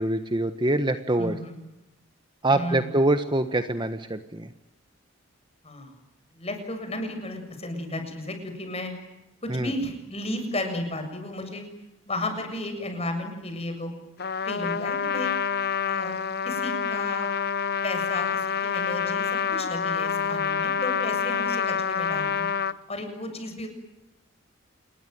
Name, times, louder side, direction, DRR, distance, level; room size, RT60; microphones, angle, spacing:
voice 1, 0.0-1.3 2.4-4.5 9.5-9.7, right 2 dB, 20° right, 9 dB, 1.3 m, -24 dB
voice 2, 1.2-1.5 2.5-2.9 5.6-5.9 6.4-8.9 9.4-11.6 12.1-13.9 14.5-15.3 15.9-16.2 16.4-17.3 17.8-22.5 22.9-23.7, left 1 dB, 30° left, 6 dB, 7.2 m, -33 dB
Trumpet, 14.2-22.7, left 7 dB, 50° left, 1.0 m, -27 dB
28.5 x 21.5 x 9.4 m, 0.95 s
head